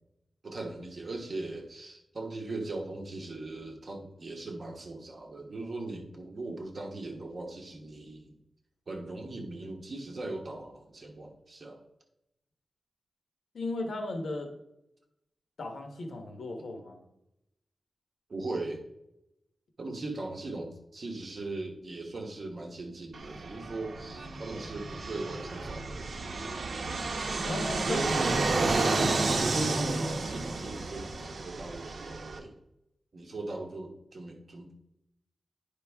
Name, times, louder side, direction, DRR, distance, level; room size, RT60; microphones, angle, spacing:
voice 1, 0.4-8.4 8.9-11.8 18.3-18.8 19.8-26.1 27.8-28.6 29.4-32.5 33.1-34.8, right 2 dB, 45° right, 1 dB, 1.2 m, -39 dB
voice 2, 13.5-14.5 15.6-17.0 27.4-28.1 28.9-29.2, left 2 dB, 80° left, 4 dB, 1.2 m, -36 dB
Fixed-wing aircraft airplane, 23.1-32.4, right 3 dB, 60° right, 0.9 m, -31 dB
9.5 x 5.2 x 3.5 m, 0.85 s
wide cardioid pair, 165°, 0 cm